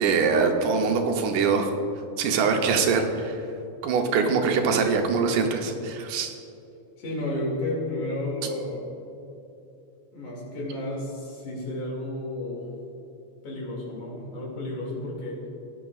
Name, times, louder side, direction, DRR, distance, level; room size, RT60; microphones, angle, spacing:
voice 1, 0.0-1.7 2.2-3.4 3.8-6.3, right 5 dB, 85° right, 3 dB, 2.4 m, -23 dB
voice 2, 7.0-8.8 10.1-12.7 13.4-15.4, left 1 dB, 80° left, -3 dB, 3.7 m, -32 dB
16.5 x 10.0 x 2.4 m, 2.8 s
omnidirectional pair, 3.5 m